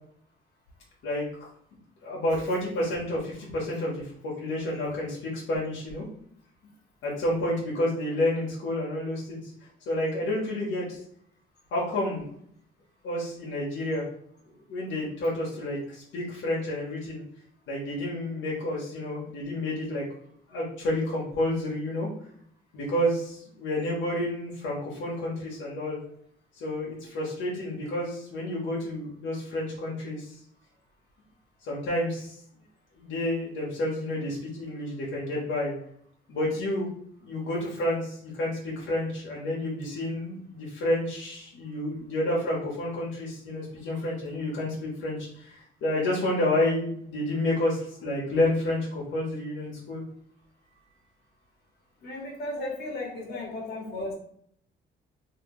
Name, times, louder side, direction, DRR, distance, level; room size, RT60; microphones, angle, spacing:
voice 1, 2.0-6.1 7.0-9.4 9.9-11.0 11.7-12.3 13.0-14.1 14.7-17.2 17.7-20.0 20.5-22.1 22.7-26.0 26.6-30.3 31.7-32.3 33.0-35.7 36.3-36.9 37.2-50.0 52.6-52.7 53.3-53.4, left 1 dB, 80° left, -5 dB, 1.2 m, -30 dB
voice 2, 52.0-54.1, left 2 dB, 55° left, -2 dB, 1.3 m, -35 dB
3.2 x 2.8 x 3.1 m, 0.65 s
cardioid pair, 90°, 20 cm